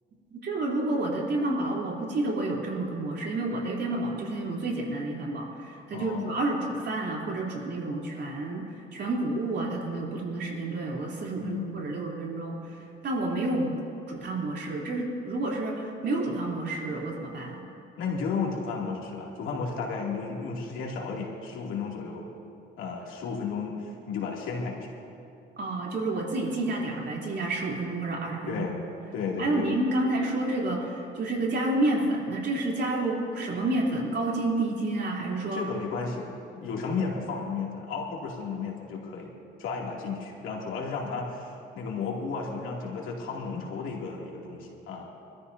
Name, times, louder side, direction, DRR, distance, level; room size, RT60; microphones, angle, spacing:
voice 1, 0.3-8.7 8.9-12.6 13.0-13.7 14.1-17.6 25.6-28.7 29.4-35.6, right 2 dB, 60° right, -3 dB, 3.4 m, -29 dB
voice 2, 5.9-6.3 11.4-11.8 18.0-22.3 22.8-24.9 28.5-28.8 29.1-29.7 35.5-36.3 36.6-39.3 39.6-45.1, left 5 dB, 85° left, -2 dB, 2.7 m, -33 dB
24.5 x 13.5 x 2.7 m, 2.6 s
cardioid pair, 90°, 20 cm